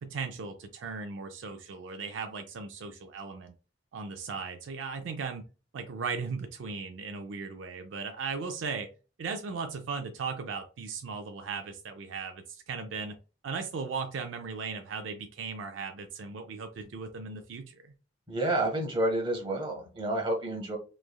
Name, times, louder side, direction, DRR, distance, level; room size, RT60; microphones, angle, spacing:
voice 1, 0.0-3.5 3.9-5.5 5.7-8.9 9.2-13.2 13.4-17.9, right 5 dB, 80° right, 6 dB, 0.4 m, -37 dB
voice 2, 18.3-20.8, right 1 dB, 25° right, 1 dB, 0.9 m, -29 dB
3.1 x 2.3 x 2.2 m, 0.33 s
head